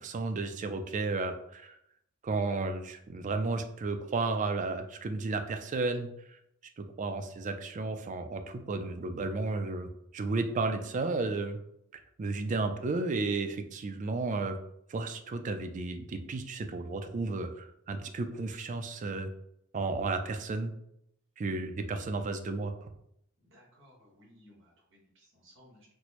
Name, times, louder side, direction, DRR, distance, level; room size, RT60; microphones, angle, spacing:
voice 1, 0.0-1.7 2.2-6.1 6.8-11.6 12.2-14.5 14.9-19.3 19.7-20.7 21.4-22.7, right 3 dB, 35° right, 7 dB, 0.3 m, -33 dB
voice 2, 23.4-25.9, equal, 60° right, -3 dB, 1.4 m, -60 dB
4.3 x 2.0 x 2.9 m, 0.76 s
head